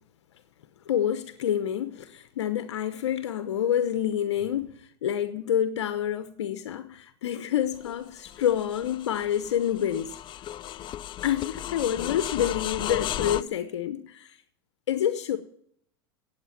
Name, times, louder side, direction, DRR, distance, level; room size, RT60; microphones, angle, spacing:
voice 1, 0.9-10.2 11.2-14.4 14.9-15.4, left 10 dB, 85° left, 1.0 m, -28 dB
sound 1, 7.7-13.4, left 12 dB, 35° left, 0.5 m, -35 dB
17.0 x 8.3 x 5.8 m
hypercardioid pair, 100°, 14 cm